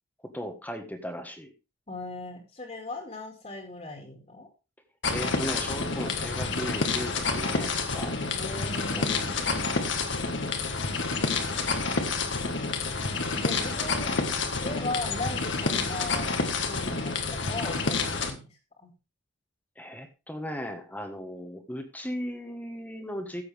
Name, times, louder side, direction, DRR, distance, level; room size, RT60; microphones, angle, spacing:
voice 1, 0.2-1.5 5.1-8.1 8.9-9.4 19.8-23.4, equal, 10° left, 5 dB, 1.6 m, -37 dB
voice 2, 1.9-4.5 8.3-9.9 13.2-14.2 14.6-16.3 16.7-18.9, left 2 dB, 35° left, 1 dB, 2.6 m, -38 dB
sound 1, 5.0-18.3, left 4 dB, 70° left, 1.7 m, -29 dB
15.0 x 7.6 x 3.5 m, 0.29 s
head